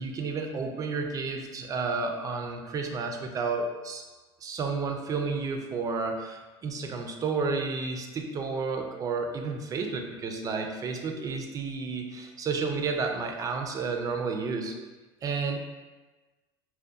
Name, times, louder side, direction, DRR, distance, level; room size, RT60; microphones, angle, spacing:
voice 1, 0.0-4.0 4.4-14.8 15.2-15.6, right 4 dB, 30° right, 3 dB, 0.3 m, -31 dB
2.6 x 2.1 x 2.3 m, 1.2 s
supercardioid pair, 100°, 12 cm